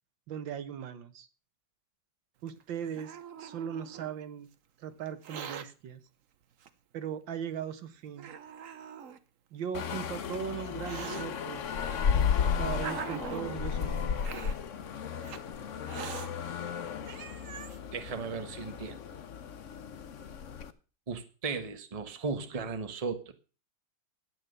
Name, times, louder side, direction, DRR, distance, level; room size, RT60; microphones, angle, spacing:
voice 1, 0.3-1.3 2.4-4.5 4.8-6.0 6.9-8.3 9.5-11.7 12.4-14.2, right 8 dB, 80° right, 12 dB, 1.8 m, -38 dB
Hiss, 2.5-4.1 5.1-5.7 6.6-6.7 7.5-7.6 8.2-9.2 10.0-11.2 12.1-13.6 14.2-14.6 15.2-15.4 15.9-16.3 16.8-16.9 17.0-17.8, right 7 dB, 50° right, 1.2 m, -42 dB
sound 1, 9.7-20.7, left 7 dB, 50° left, 1.0 m, -34 dB
voice 2, 17.9-19.2 21.1-23.3, right 4 dB, 20° right, 8 dB, 1.1 m, -36 dB
12.5 x 8.9 x 6.7 m, 0.36 s
omnidirectional pair, 2.1 m